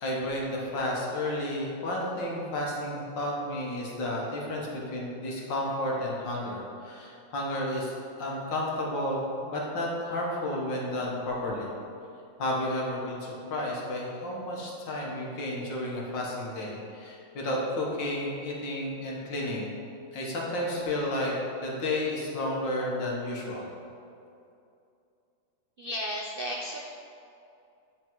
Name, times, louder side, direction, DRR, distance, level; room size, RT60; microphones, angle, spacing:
voice 1, 0.0-11.7 12.4-19.7 20.1-21.3 21.6-23.7, left 1 dB, 85° left, -3 dB, 2.1 m, -32 dB
voice 2, 25.8-26.8, equal, 80° right, -1 dB, 0.5 m, -33 dB
9.9 x 4.7 x 4.6 m, 2.6 s
omnidirectional pair, 1.9 m